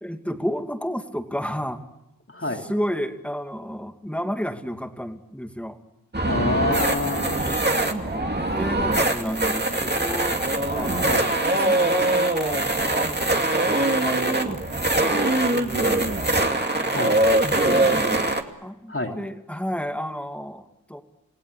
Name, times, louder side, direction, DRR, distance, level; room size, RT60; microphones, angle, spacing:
voice 1, 0.0-1.9 2.6-5.8 7.5-14.6 15.0-16.2 16.7-17.2 17.5-18.3 18.6-21.0, equal, 5° left, 6 dB, 2.5 m, -32 dB
voice 2, 2.3-2.7 6.2-7.5 10.9-11.3 16.9-17.2 18.9-19.2, left 2 dB, 35° left, 2 dB, 3.8 m, -27 dB
sound 1, 6.1-18.4, right 2 dB, 30° right, 2.5 m, -22 dB
29.5 x 17.0 x 8.4 m, 0.89 s
cardioid pair, 40°, 35 cm